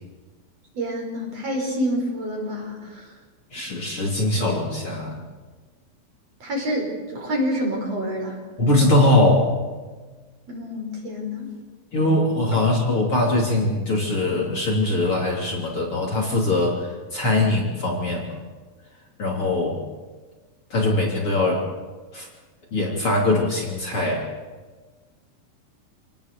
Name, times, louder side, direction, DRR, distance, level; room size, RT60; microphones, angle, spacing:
voice 1, 0.7-3.2 6.4-8.4 10.5-11.5, equal, 45° right, 0 dB, 6.3 m, -27 dB
voice 2, 3.5-5.2 8.6-9.6 11.9-18.4 19.2-19.8 20.7-21.7 22.1-22.3 22.7-24.3, left 2 dB, 35° left, -2 dB, 3.7 m, -22 dB
28.0 x 19.0 x 6.9 m, 1.4 s
omnidirectional pair, 4.2 m